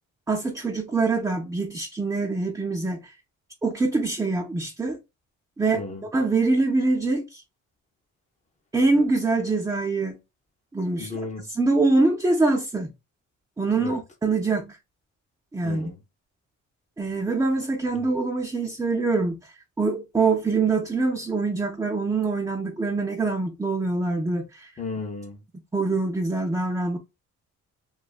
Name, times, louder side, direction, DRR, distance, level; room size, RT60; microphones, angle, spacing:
voice 1, 0.3-3.0 3.6-5.0 5.6-5.8 6.1-7.4 8.7-10.2 10.7-11.1 11.6-12.9 13.6-14.8 15.5-15.9 17.0-19.4 19.8-24.7 25.7-27.0, right 3 dB, 10° right, 0.5 m, -24 dB
voice 2, 5.7-6.1 11.0-11.5 13.8-14.0 15.6-16.0 17.9-18.1 24.8-25.4, left 3 dB, 25° left, 0.7 m, -35 dB
2.6 x 2.3 x 2.4 m
cardioid pair, 90°, 30 cm